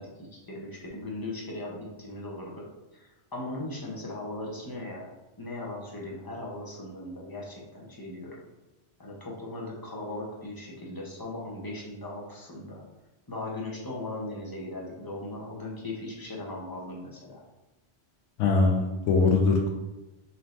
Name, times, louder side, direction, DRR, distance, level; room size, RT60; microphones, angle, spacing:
voice 1, 0.0-2.7 2.9-5.1 5.4-8.4 9.0-12.8 13.3-17.4, left 2 dB, 25° left, -3 dB, 0.6 m, -38 dB
voice 2, 18.4-19.7, left 3 dB, 85° left, 2 dB, 0.9 m, -22 dB
4.1 x 2.7 x 3.2 m, 1.0 s
omnidirectional pair, 1.2 m